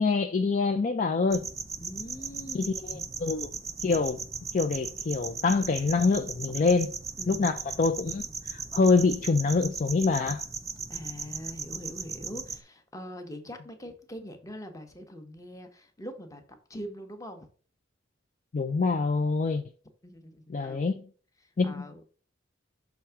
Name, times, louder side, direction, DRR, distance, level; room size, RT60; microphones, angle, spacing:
voice 1, 0.0-1.5 2.5-3.5 3.8-4.2 4.5-6.9 7.3-10.4 18.5-19.6 20.5-21.1 21.6-21.8, left 4 dB, 40° left, 0.4 m, -25 dB
sound 1, 1.3-12.6, right 5 dB, 15° right, 0.5 m, -38 dB
voice 2, 1.8-3.0 6.5-6.6 7.2-7.6 10.9-16.4 16.7-17.5 20.0-20.9 21.6-22.0, equal, 20° left, 1.0 m, -42 dB
6.2 x 3.5 x 5.7 m
head